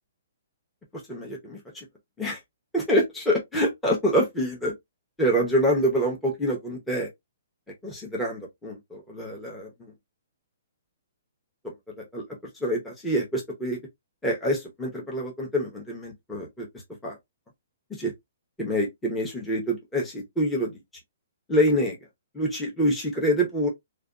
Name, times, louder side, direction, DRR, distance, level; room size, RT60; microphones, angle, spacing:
voice 1, 1.1-1.8 2.2-2.4 2.7-4.7 5.2-7.1 7.8-9.7 11.6-12.3 12.5-13.8 14.2-16.7 17.0-17.2 17.9-18.1 18.6-20.8 21.5-22.0 22.3-23.7, equal, 5° left, 0.7 m, -26 dB
2.5 x 2.2 x 2.4 m
hypercardioid pair, 150°, 0 cm